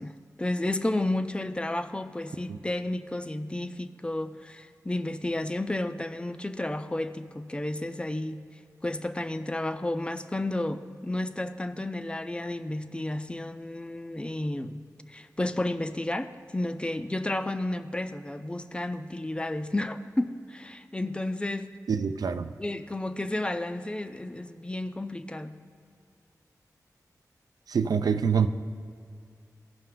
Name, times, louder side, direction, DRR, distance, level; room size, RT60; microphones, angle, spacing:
voice 1, 0.0-8.5 8.8-21.8 22.6-25.7, left 1 dB, 15° left, 10 dB, 0.4 m, -32 dB
voice 2, 21.9-22.5 27.7-28.5, right 6 dB, 80° right, 10 dB, 0.4 m, -25 dB
15.0 x 5.6 x 3.8 m, 2.3 s
wide cardioid pair, 80°, 6 cm